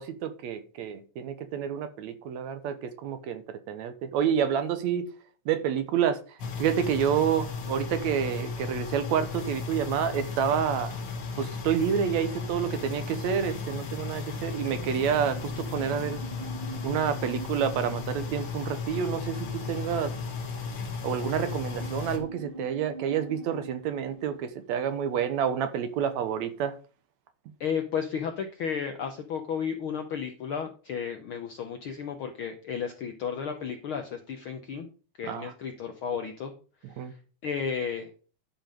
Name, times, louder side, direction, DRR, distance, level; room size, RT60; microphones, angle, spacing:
voice 1, 0.0-5.1 5.5-10.9 11.4-16.2 16.8-20.1 21.0-26.8 35.3-35.5 36.8-37.1, right 8 dB, 75° right, 2.1 m, -29 dB
sound 1, 6.4-22.2, left 4 dB, 50° left, 2.2 m, -35 dB
sound 2, 15.0-24.4, right 2 dB, 30° right, 1.0 m, -45 dB
voice 2, 27.6-34.9 35.2-36.5 37.4-38.1, left 7 dB, 70° left, 1.2 m, -33 dB
11.5 x 5.4 x 5.1 m
omnidirectional pair, 3.5 m